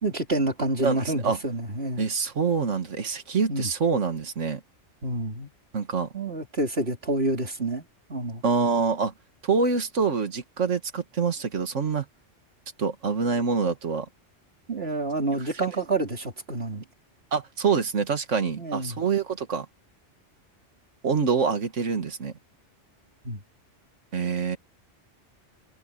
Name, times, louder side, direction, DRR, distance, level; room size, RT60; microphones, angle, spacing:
voice 1, 0.0-2.1 3.5-3.7 5.0-5.5 6.1-8.4 14.7-16.8 18.6-19.0 23.2-23.4, right 2 dB, 55° right, 3.8 m, -28 dB
voice 2, 2.0-4.6 5.7-6.1 8.4-9.1 9.4-12.1 12.8-14.1 17.3-19.7 21.0-22.3 24.1-24.6, right 5 dB, 80° right, 2.0 m, -25 dB
omnidirectional pair, 1.2 m